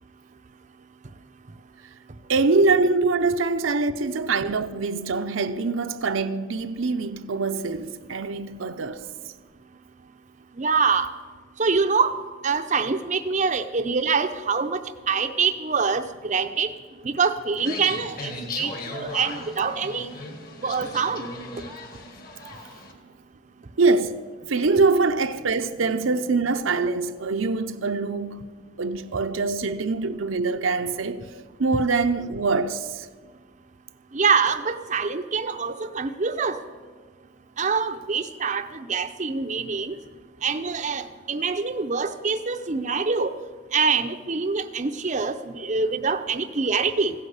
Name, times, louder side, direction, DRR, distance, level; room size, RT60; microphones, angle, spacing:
voice 1, 2.3-9.1 22.0-22.2 23.8-24.2 24.5-28.5 28.8-31.2 31.6-33.1, right 3 dB, 75° right, 0.7 m, -24 dB
voice 2, 10.6-11.1 11.6-12.1 12.4-14.8 15.1-16.7 17.0-20.1 20.6-21.2 34.1-36.6 37.6-39.9 40.4-43.3 43.7-47.1, right 5 dB, 35° right, 0.6 m, -25 dB
sound 1, 17.6-22.9, left 2 dB, 45° left, 2.0 m, -37 dB
15.5 x 9.7 x 8.1 m
head